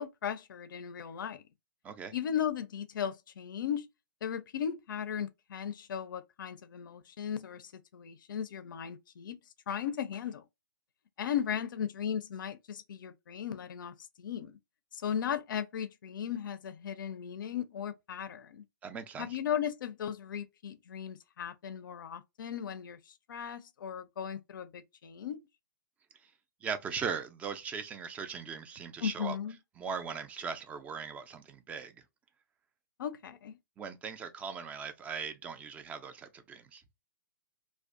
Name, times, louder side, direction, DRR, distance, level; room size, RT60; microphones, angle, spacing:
voice 1, 0.0-1.4 2.1-3.9 4.2-9.4 9.7-10.4 11.2-14.6 14.9-18.6 19.2-25.4 29.0-29.6 33.0-33.6, left 8 dB, 65° left, 0.4 m, -37 dB
voice 2, 18.8-19.4 26.2-26.3 26.6-29.4 29.8-32.0 33.8-36.8, right 6 dB, 10° right, 0.3 m, -39 dB
2.5 x 2.1 x 2.4 m
hypercardioid pair, 130°, 11 cm